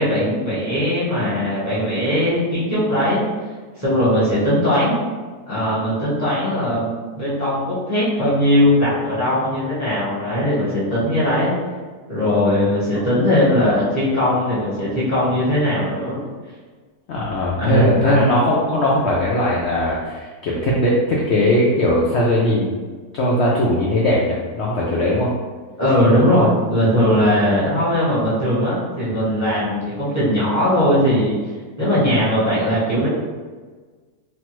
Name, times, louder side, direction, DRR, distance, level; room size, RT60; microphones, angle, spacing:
voice 1, 0.0-3.2 3.8-5.0 5.5-11.5 12.1-16.2 17.6-18.2 25.8-31.4 31.8-33.1, left 1 dB, 15° right, -9 dB, 0.6 m, -19 dB
voice 2, 17.1-22.7 23.1-25.3, left 1 dB, 75° left, -4 dB, 0.6 m, -19 dB
3.1 x 2.1 x 2.9 m, 1.4 s
omnidirectional pair, 1.6 m